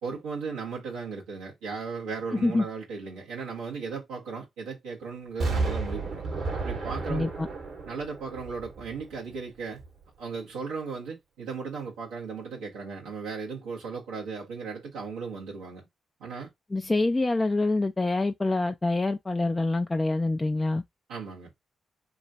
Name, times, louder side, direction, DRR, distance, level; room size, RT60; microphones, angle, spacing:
voice 1, 0.0-6.2 6.5-7.5 7.8-9.8 10.2-15.9 16.2-16.5 21.1-21.5, right 5 dB, 80° right, 1.2 m, -36 dB
Explosion, 5.4-9.3 9.8-9.9, right 3 dB, 65° right, 1.5 m, -32 dB
voice 2, 7.1-7.5 16.7-20.8, left 2 dB, 25° left, 0.4 m, -26 dB
3.0 x 2.4 x 2.8 m
hypercardioid pair, 40°, 0 cm